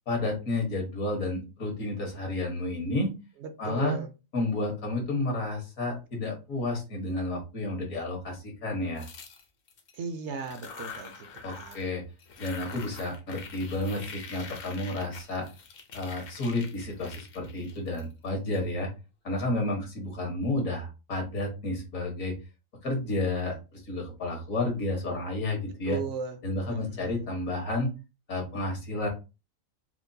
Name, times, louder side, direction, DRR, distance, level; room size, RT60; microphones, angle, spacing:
voice 1, 0.1-3.1 3.6-4.0 4.3-9.1 11.4-12.0 12.4-15.5 15.9-18.9 19.2-22.3 22.8-26.0 26.4-27.9 28.3-29.1, left 2 dB, 75° left, 1.7 m, -31 dB
voice 2, 3.4-4.1 10.0-11.8 25.9-26.4 26.7-27.2, right 5 dB, 65° right, 0.8 m, -37 dB
sound 1, 9.0-10.0 10.4-11.9 12.2-18.6, left 5 dB, 55° left, 0.7 m, -45 dB
4.4 x 2.2 x 2.7 m
omnidirectional pair, 1.4 m